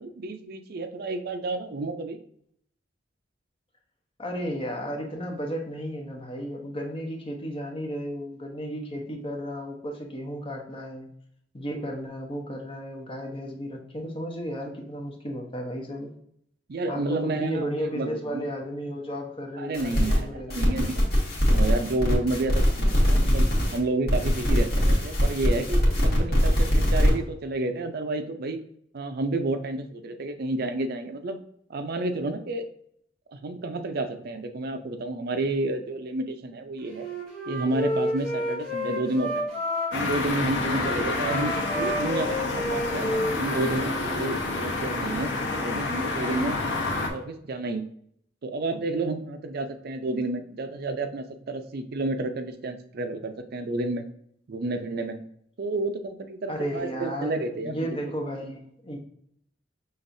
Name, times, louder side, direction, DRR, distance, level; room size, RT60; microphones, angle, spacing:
voice 1, 0.0-2.2 16.7-17.7 17.9-18.4 19.6-21.1 21.5-28.6 28.9-31.4 31.7-32.6 33.3-37.1 37.5-39.6 39.9-45.3 45.6-46.6 47.1-47.9 48.4-54.1 54.5-55.2 55.6-57.8, right 2 dB, 55° right, 8 dB, 0.5 m, -30 dB
voice 2, 4.2-11.1 11.5-16.1 16.9-20.6 56.5-59.0, equal, 30° left, 2 dB, 0.9 m, -34 dB
sound 1, 19.7-20.2 20.5-23.8 24.1-27.1, equal, 60° left, 1.6 m, -22 dB
Wind instrument woodwind instrument, 36.9-40.2 40.7-44.3, left 1 dB, 5° left, 1.8 m, -31 dB
sound 2, 39.9-47.1, left 2 dB, 75° left, 0.9 m, -29 dB
5.8 x 3.4 x 2.6 m, 0.69 s
head